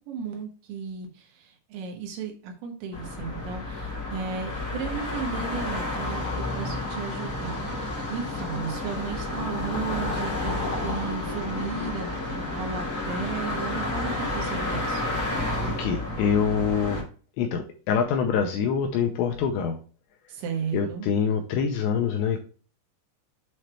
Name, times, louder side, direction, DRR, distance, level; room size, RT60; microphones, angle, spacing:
voice 1, 0.1-15.0 20.3-21.1, right 6 dB, 75° right, 2 dB, 3.3 m, -34 dB
sound 1, 2.9-17.0, left 2 dB, 45° left, 1.0 m, -31 dB
voice 2, 15.8-17.0 17.4-19.8 20.7-22.4, left 6 dB, 85° left, 4 dB, 2.6 m, -25 dB
7.8 x 3.2 x 4.3 m, 0.38 s
omnidirectional pair, 5.6 m